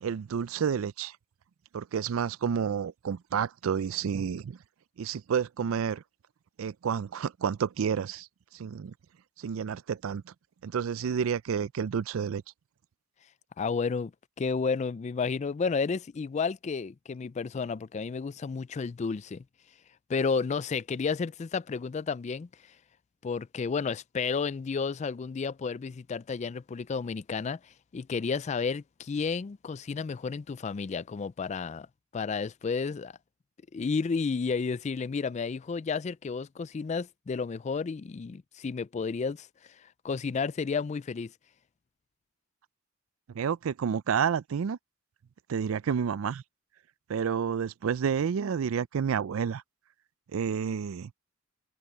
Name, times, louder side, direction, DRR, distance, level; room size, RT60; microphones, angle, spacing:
voice 1, 0.0-1.1 1.7-4.6 5.0-6.0 6.6-8.3 8.5-8.9 9.4-10.3 10.6-12.4 43.3-44.8 45.5-46.4 47.1-49.6 50.3-51.1, right 7 dB, 85° right, 0.4 m, -30 dB
voice 2, 13.6-14.1 14.4-19.4 20.1-22.5 23.2-31.9 32.1-33.1 33.7-39.5 39.8-41.3, left 5 dB, 35° left, 0.3 m, -31 dB
head